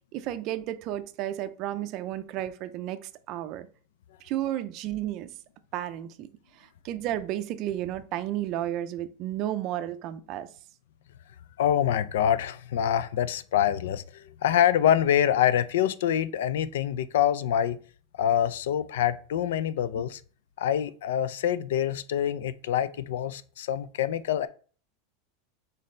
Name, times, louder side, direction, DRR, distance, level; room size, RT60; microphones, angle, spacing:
voice 1, 0.1-3.7 4.2-5.3 5.7-6.3 6.5-10.5 20.0-20.1, right 12 dB, 40° right, 0.4 m, -32 dB
voice 2, 11.6-17.8 18.2-20.2 20.6-24.5, left 10 dB, 85° left, 0.4 m, -25 dB
4.2 x 3.9 x 3.2 m
supercardioid pair, 155°, 0 cm